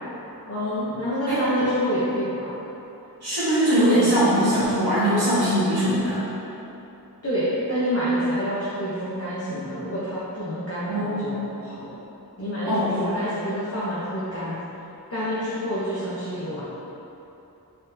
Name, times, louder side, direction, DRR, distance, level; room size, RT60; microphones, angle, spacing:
voice 1, 0.5-2.5 7.2-12.0 12.4-14.6 15.1-16.6, equal, 40° left, -10 dB, 0.8 m, -27 dB
voice 2, 3.2-6.2 10.9-11.4 12.6-13.2, equal, 85° right, -13 dB, 1.1 m, -21 dB
4.3 x 3.9 x 2.6 m, 3.0 s
wide cardioid pair, 50°, 38 cm